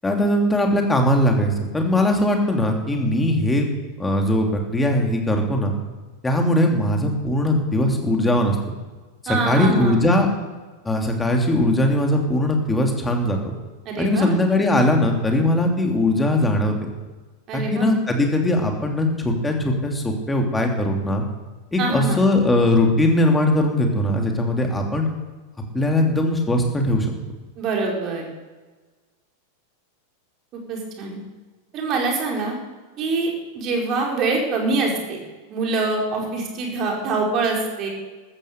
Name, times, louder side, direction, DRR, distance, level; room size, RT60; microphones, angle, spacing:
voice 1, 0.0-3.7 4.0-5.7 6.2-8.6 9.2-10.3 10.8-13.4 14.0-16.8 17.5-21.2 21.7-25.0 25.7-27.1, left 1 dB, 10° left, 2 dB, 3.1 m, -20 dB
voice 2, 9.3-10.1 13.8-14.4 17.5-17.9 21.8-22.2 27.6-28.3 30.5-31.2 31.7-32.6 33.0-33.3 33.5-35.2 35.5-37.9, right 3 dB, 35° right, 0 dB, 4.8 m, -24 dB
14.0 x 14.0 x 6.8 m, 1.3 s
figure-of-eight pair, 90°, 0 cm